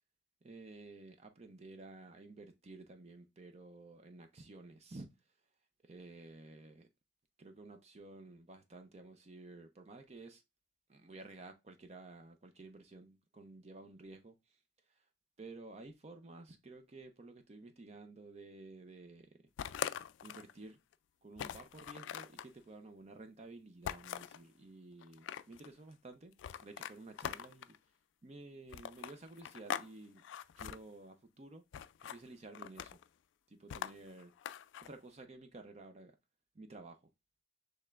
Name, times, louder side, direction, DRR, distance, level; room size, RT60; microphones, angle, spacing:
voice 1, 0.4-5.1 5.8-6.9 7.4-10.4 10.9-14.6 14.9-15.0 15.4-19.3 20.2-20.8 21.2-26.3 26.6-27.7 28.2-30.2 30.6-31.6 32.1-33.0 33.5-34.3 34.8-36.1 36.5-37.0, right 2 dB, 35° right, 0.5 m, -53 dB
sound 1, 19.6-20.5 20.9-21.0 21.4-22.5 23.8-24.4 25.0-25.7 26.4-27.8 28.7-29.9 30.2-30.8 31.7-32.2 32.5-33.1 33.7-34.9, left 9 dB, 80° left, 0.3 m, -42 dB
6.3 x 3.3 x 2.4 m
head